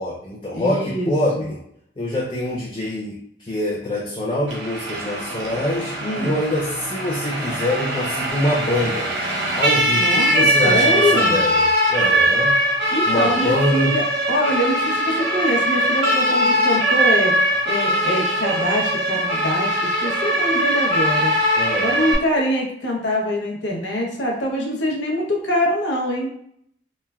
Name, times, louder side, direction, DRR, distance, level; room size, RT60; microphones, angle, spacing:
voice 1, 0.0-1.6 2.0-9.1 9.6-12.6 13.1-13.9 21.5-21.9, left 1 dB, 25° left, -5 dB, 0.4 m, -24 dB
voice 2, 0.5-1.5 6.0-6.3 9.9-11.3 12.9-17.3 17.7-21.3 21.8-26.3, left 1 dB, 80° left, 0 dB, 0.7 m, -24 dB
Siren, 4.5-22.2, equal, 80° right, 0.8 m, -21 dB
3.1 x 2.1 x 2.3 m, 0.70 s
head